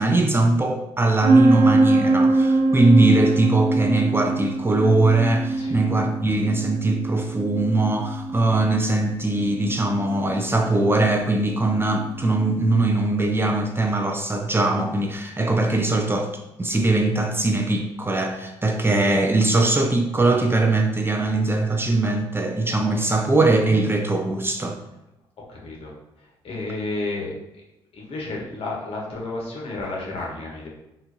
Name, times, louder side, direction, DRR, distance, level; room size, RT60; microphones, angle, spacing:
voice 1, 0.0-16.3 16.6-24.8, right 2 dB, 20° right, 4 dB, 0.5 m, -21 dB
sound 1, 1.2-12.7, right 2 dB, 75° right, 1.0 m, -23 dB
voice 2, 25.5-25.9 26.4-27.3 27.9-30.7, left 2 dB, 55° left, -2 dB, 1.2 m, -31 dB
4.2 x 2.5 x 2.9 m, 0.91 s
supercardioid pair, 55°, 11 cm